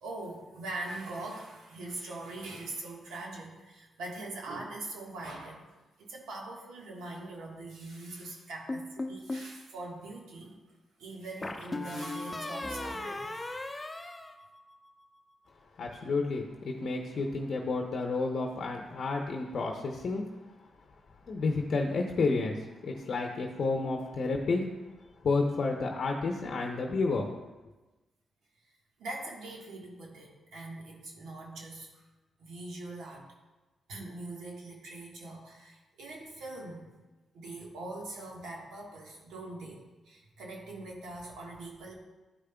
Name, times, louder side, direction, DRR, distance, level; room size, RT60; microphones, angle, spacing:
voice 1, 0.0-5.7 6.0-10.6 11.0-13.7 29.0-32.0 32.4-33.3 33.9-36.9 37.3-41.9, right 2 dB, 90° right, -1 dB, 1.4 m, -42 dB
sound 1, 8.7-9.5 11.4-15.0, left 2 dB, 20° left, 0.7 m, -37 dB
voice 2, 15.8-20.2 21.3-24.6 25.2-27.3, left 3 dB, 60° left, 1 dB, 0.7 m, -30 dB
11.5 x 5.0 x 2.3 m, 1.1 s
cardioid pair, 70°, 0 cm